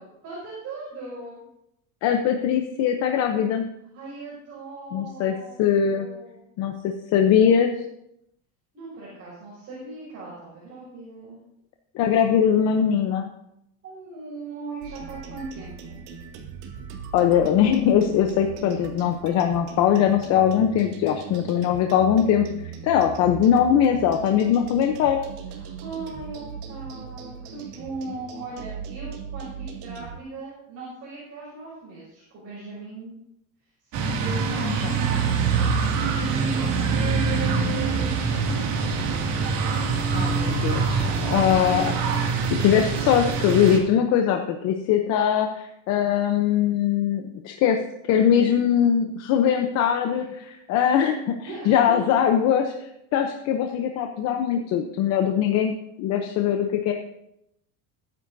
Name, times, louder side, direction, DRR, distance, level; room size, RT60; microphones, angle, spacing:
voice 1, 0.0-1.4 3.9-6.4 8.7-11.4 13.8-16.0 25.5-33.1 33.8-35.3 36.2-38.8 41.3-41.6 50.1-50.3 51.4-52.0, right 3 dB, 35° right, -6 dB, 6.1 m, -38 dB
voice 2, 2.0-3.7 4.9-6.1 6.6-7.7 11.9-13.3 17.1-22.5 22.8-25.2 34.6-34.9 40.1-41.9 42.6-47.8 48.1-51.3 51.7-52.7 53.1-56.9, left 9 dB, 35° left, 4 dB, 0.8 m, -21 dB
sound 1, 14.8-30.2, right 7 dB, 85° right, 2.4 m, -39 dB
sound 2, 33.9-43.8, right 5 dB, 50° right, 2.5 m, -24 dB
21.5 x 10.0 x 2.7 m, 0.80 s
cardioid pair, 175°, 45 cm